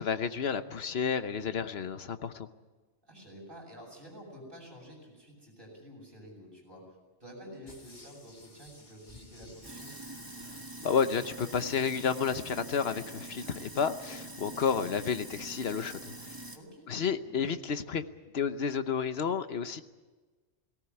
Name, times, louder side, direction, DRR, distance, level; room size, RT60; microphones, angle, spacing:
voice 1, 0.0-2.5 10.8-16.3 16.9-18.0 18.3-19.8, left 6 dB, 65° left, 1.2 m, -31 dB
voice 2, 3.0-6.8 7.2-9.9 16.5-17.4, equal, 50° right, 7.2 m, -49 dB
sound 1, 7.7-12.1 12.5-12.6, left 1 dB, 40° left, 2.7 m, -56 dB
Sink (filling or washing), 9.6-16.6, right 1 dB, 20° right, 1.8 m, -44 dB
18.5 x 18.0 x 9.8 m
omnidirectional pair, 1.2 m